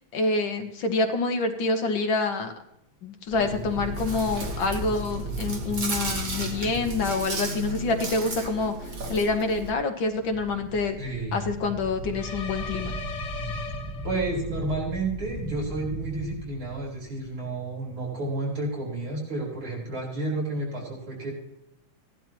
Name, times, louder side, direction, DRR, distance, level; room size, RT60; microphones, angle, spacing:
voice 1, 0.1-2.5 3.0-8.7 9.1-11.0 11.3-13.0, left 3 dB, 65° left, 5 dB, 1.8 m, -27 dB
sound 1, 3.3-7.2 10.0-17.3, right 1 dB, 20° right, 0.5 m, -37 dB
Chewing mastication, 3.3-9.7, right 3 dB, 45° right, 1.7 m, -34 dB
voice 2, 11.0-11.4 14.0-21.3, right 2 dB, 75° right, -3 dB, 5.2 m, -31 dB
sound 2, 12.1-14.5, left 5 dB, 50° left, 0.9 m, -38 dB
16.0 x 11.5 x 3.0 m, 0.82 s
omnidirectional pair, 2.3 m